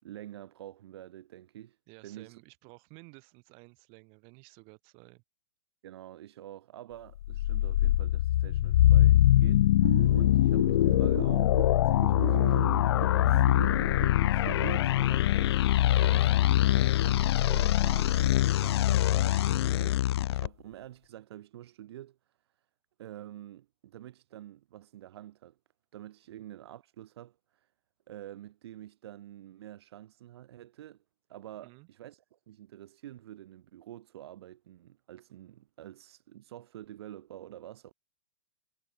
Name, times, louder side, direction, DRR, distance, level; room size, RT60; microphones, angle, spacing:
voice 1, 0.0-1.8 2.0-2.4 5.8-11.6 11.8-22.2 23.0-25.6 25.9-27.7 28.1-31.0 31.3-37.9, right 13 dB, 65° right, 5.8 m, -48 dB
voice 2, 1.9-5.2 15.9-16.2 31.6-31.9, right 36 dB, 40° right, 6.6 m, -54 dB
sound 1, 7.2-20.5, left 13 dB, 65° left, 0.7 m, -23 dB
sound 2, 9.8-14.9, right 9 dB, 80° right, 2.7 m, -39 dB
hypercardioid pair, 145°, 15 cm